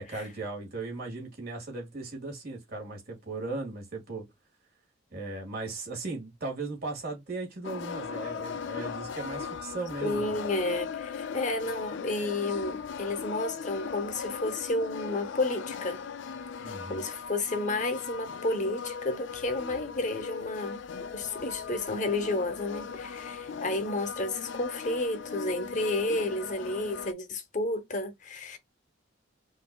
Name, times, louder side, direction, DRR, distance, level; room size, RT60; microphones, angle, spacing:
voice 1, 0.0-4.2 5.1-10.4 16.6-17.0, right 3 dB, 50° right, 1.8 m, -37 dB
sound 1, 7.6-27.1, left 6 dB, 65° left, 0.4 m, -38 dB
voice 2, 10.0-16.0 16.6-28.6, left 2 dB, 40° left, 0.8 m, -31 dB
5.2 x 2.6 x 2.2 m
head